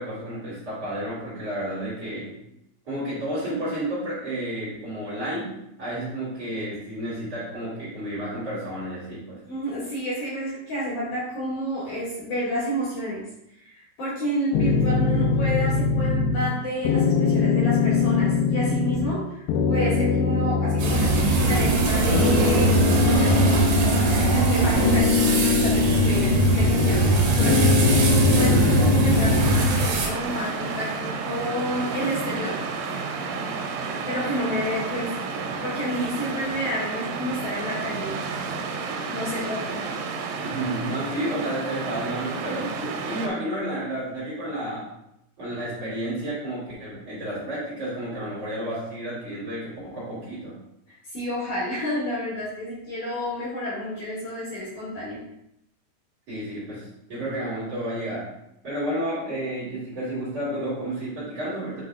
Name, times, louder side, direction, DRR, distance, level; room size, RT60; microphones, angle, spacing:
voice 1, 0.0-2.3 2.8-5.5 5.8-9.4 28.3-29.1 40.4-42.7 43.0-44.9 45.4-50.5 56.3-58.3 58.6-61.8, right 1 dB, 40° right, -9 dB, 2.7 m, -31 dB
voice 2, 9.4-13.2 13.6-21.1 21.4-23.6 24.3-27.6 28.4-32.6 34.1-35.3 35.6-38.1 39.1-39.8 42.6-42.9 50.9-55.2, equal, 50° left, -9 dB, 3.1 m, -30 dB
sound 1, 14.5-16.6 16.9-19.2 19.5-21.8 22.1-24.5 24.8-27.1 27.4-29.7, left 5 dB, 80° left, 2.5 m, -23 dB
sound 2, 20.8-30.1, right 2 dB, 70° right, 2.9 m, -21 dB
sound 3, 29.4-43.3, right 4 dB, 85° right, 3.1 m, -31 dB
8.5 x 5.3 x 2.4 m, 0.81 s
omnidirectional pair, 5.4 m